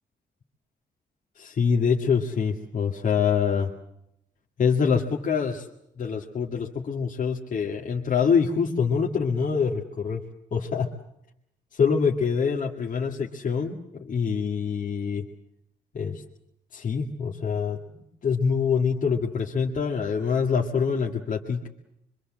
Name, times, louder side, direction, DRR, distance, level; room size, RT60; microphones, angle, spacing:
voice 1, 1.4-3.7 4.6-5.7 6.0-10.2 10.5-10.9 11.7-15.3 15.9-16.2 16.7-17.8 18.2-21.7, left 6 dB, 45° left, -1 dB, 2.0 m, -25 dB
25.0 x 25.0 x 7.5 m, 0.79 s
wide cardioid pair, 170°, 18 cm